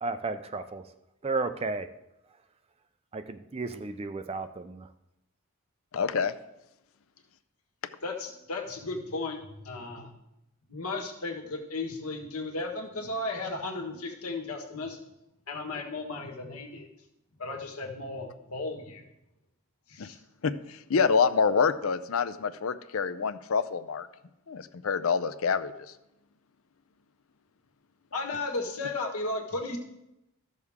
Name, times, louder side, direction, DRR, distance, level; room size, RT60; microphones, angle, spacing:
voice 1, 0.0-0.8 1.2-1.9 3.1-4.9, right 3 dB, 25° right, 10 dB, 0.4 m, -33 dB
voice 2, 5.9-6.3 20.0-20.1 20.4-24.1 24.5-25.9, left 5 dB, 70° left, 12 dB, 0.5 m, -27 dB
voice 3, 8.0-10.1 10.7-15.0 15.5-16.9 17.4-19.0 19.9-20.2 28.1-29.8, left 2 dB, 85° left, 2 dB, 1.5 m, -35 dB
14.0 x 6.4 x 3.6 m, 0.90 s
head